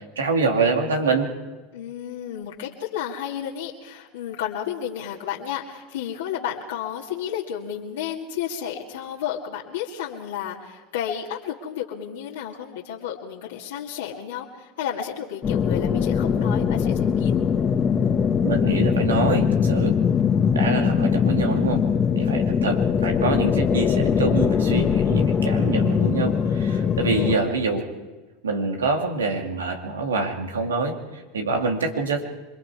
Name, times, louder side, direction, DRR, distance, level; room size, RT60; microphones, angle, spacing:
voice 1, 0.2-1.3 18.4-20.0 20.5-21.8 22.1-27.9 28.4-32.2, right 3 dB, 90° right, 3 dB, 2.4 m, -25 dB
voice 2, 1.7-17.4 19.8-20.3 22.2-22.4 26.8-27.4 31.6-31.7, left 9 dB, 75° left, -3 dB, 2.2 m, -32 dB
sound 1, 15.4-27.4, left 7 dB, 35° left, 1.4 m, -21 dB
27.0 x 22.0 x 4.8 m, 1.2 s
hypercardioid pair, 85°, 0 cm